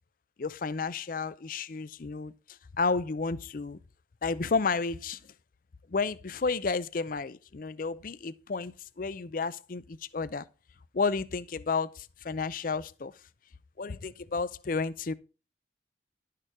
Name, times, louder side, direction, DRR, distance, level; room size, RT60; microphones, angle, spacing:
voice 1, 0.4-2.3 2.8-3.8 4.2-5.2 5.9-10.4 10.9-13.1 13.8-15.1, left 4 dB, 50° left, 0.5 m, -31 dB
11.5 x 6.7 x 4.7 m
head